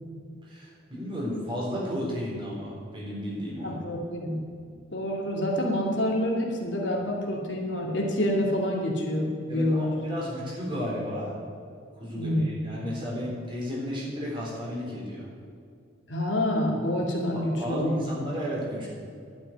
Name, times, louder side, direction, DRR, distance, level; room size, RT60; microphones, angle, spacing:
voice 1, 0.5-3.8 9.5-11.3 12.0-15.3 17.3-18.9, equal, 25° right, -4 dB, 3.9 m, -33 dB
voice 2, 3.6-4.4 4.9-9.9 12.1-12.5 16.1-18.1, left 1 dB, 75° left, -1 dB, 2.6 m, -27 dB
11.5 x 7.0 x 9.4 m, 2.3 s
head